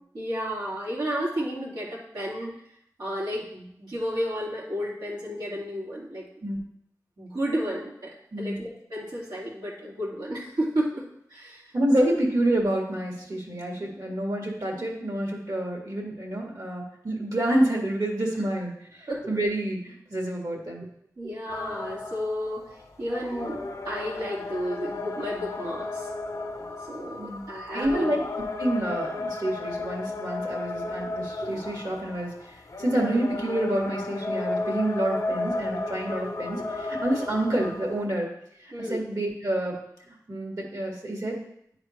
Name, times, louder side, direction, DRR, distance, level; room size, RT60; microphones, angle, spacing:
voice 1, 0.1-2.5 3.0-6.2 7.2-11.0 11.3-11.7 12.1-12.2 19.1-19.3 21.2-22.6 23.0-23.6 23.8-26.1 26.9-28.1 38.7-39.0, equal, 90° right, -6 dB, 2.3 m, -32 dB
voice 2, 8.3-8.7 11.7-20.8 27.2-27.4 27.7-38.3 38.6-39.8 40.1-41.4, right 1 dB, 65° right, -1 dB, 2.0 m, -28 dB
sound 1, 21.5-38.1, left 2 dB, 55° left, 0.7 m, -34 dB
10.0 x 4.0 x 3.2 m, 0.71 s
wide cardioid pair, 50°, 7 cm